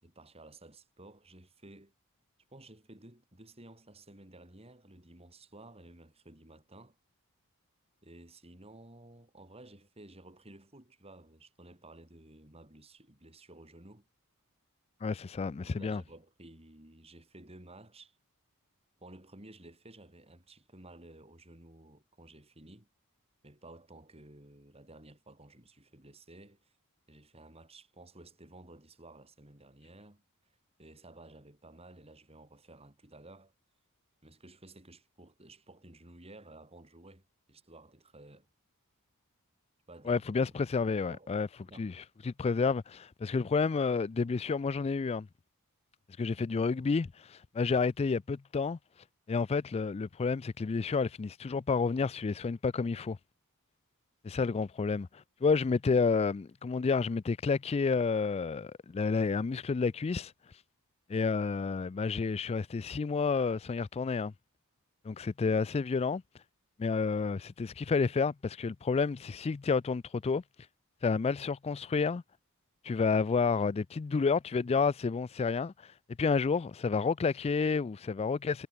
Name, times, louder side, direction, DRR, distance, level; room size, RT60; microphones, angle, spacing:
voice 1, 0.0-1.9 2.5-7.0 8.0-14.1 15.1-18.2 19.0-22.9 23.4-26.7 27.1-30.2 30.8-33.5 34.2-38.5 39.9-40.2 41.1-41.3 41.6-41.9, right 2 dB, 25° right, 4.7 m, -54 dB
voice 2, 15.0-16.0 40.1-41.5 41.8-41.9 42.2-45.3 46.2-48.8 49.3-53.2 54.2-60.3 61.1-64.3 65.0-66.2 66.8-70.4 71.0-72.2 72.8-75.7 76.2-78.7, left 4 dB, 30° left, 0.3 m, -30 dB
head